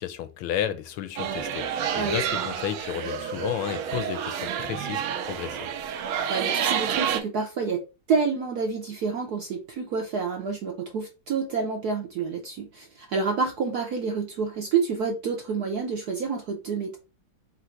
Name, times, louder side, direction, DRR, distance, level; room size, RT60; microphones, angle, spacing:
voice 1, 0.0-5.6, left 10 dB, 85° left, 1.5 m, -32 dB
sound 1, 1.2-7.2, right 8 dB, 85° right, 1.5 m, -29 dB
voice 2, 1.9-2.5 6.3-7.8 8.1-17.0, right 5 dB, 65° right, 1.0 m, -28 dB
4.0 x 2.6 x 4.4 m
omnidirectional pair, 2.3 m